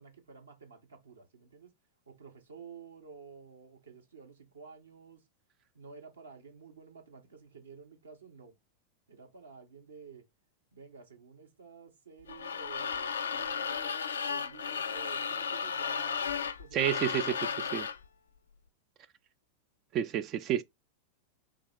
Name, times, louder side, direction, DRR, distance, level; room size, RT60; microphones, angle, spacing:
voice 1, 0.0-1.7 2.1-5.2 5.7-8.5 9.1-10.2 10.7-16.2 16.6-17.0 17.3-17.8, right 5 dB, 75° right, 1.1 m, -52 dB
sound 1, 12.3-18.0, left 6 dB, 70° left, 0.4 m, -34 dB
voice 2, 16.7-17.4 17.7-17.9 19.9-20.6, right 10 dB, 35° right, 0.3 m, -29 dB
3.7 x 2.9 x 3.5 m
figure-of-eight pair, 90°, 0 cm